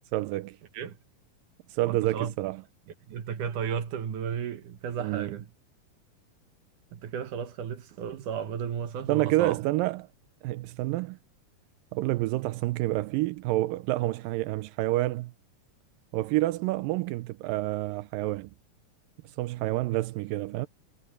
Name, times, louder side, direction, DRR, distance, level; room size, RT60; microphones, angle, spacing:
voice 1, 0.1-0.6 1.7-2.6 5.0-5.4 9.1-10.1 10.4-11.2 11.9-15.3 16.1-18.5 19.4-20.7, right 17 dB, 85° right, 2.3 m, -28 dB
voice 2, 1.8-2.3 3.1-5.5 6.9-9.6, right 7 dB, 70° right, 2.6 m, -34 dB
omnidirectional pair, 3.9 m